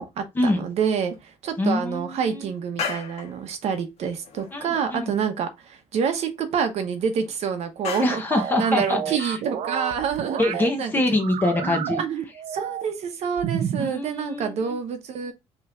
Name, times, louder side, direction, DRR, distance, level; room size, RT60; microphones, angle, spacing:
voice 1, 0.0-8.2 8.6-11.2 12.0-12.1 12.5-15.3, right 6 dB, 70° right, 0.9 m, -27 dB
sound 1, 1.1-1.2 1.5-2.1 2.5-3.4 3.7-3.8 4.0-4.9 5.2-5.3 5.5-5.6 6.4-7.3 7.8-8.3, left 6 dB, 70° left, 1.2 m, -35 dB
voice 2, 1.6-2.5 4.5-5.1 8.0-9.3 10.4-12.0 13.8-14.7, left 2 dB, 20° left, 0.9 m, -25 dB
sound 2, 8.3-10.7 11.2-13.0 13.4-13.9, right 9 dB, 85° right, 0.6 m, -30 dB
5.4 x 3.1 x 2.5 m
cardioid pair, 180°, 12 cm